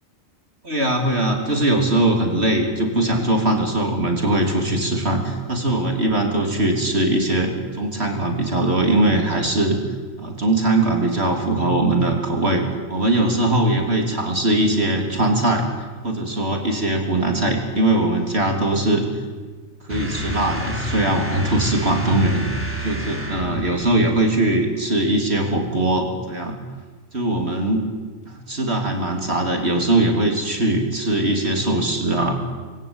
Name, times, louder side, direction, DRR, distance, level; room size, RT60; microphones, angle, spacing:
voice 1, 0.6-9.8 10.2-12.6 12.9-15.7 16.0-19.1 19.8-22.4 22.8-26.6 27.1-27.9 28.3-32.4, right 1 dB, 50° right, 2 dB, 3.8 m, -21 dB
sound 1, 19.9-23.8, equal, 10° right, 4.2 m, -29 dB
27.5 x 20.5 x 9.0 m, 1.4 s
omnidirectional pair, 1.4 m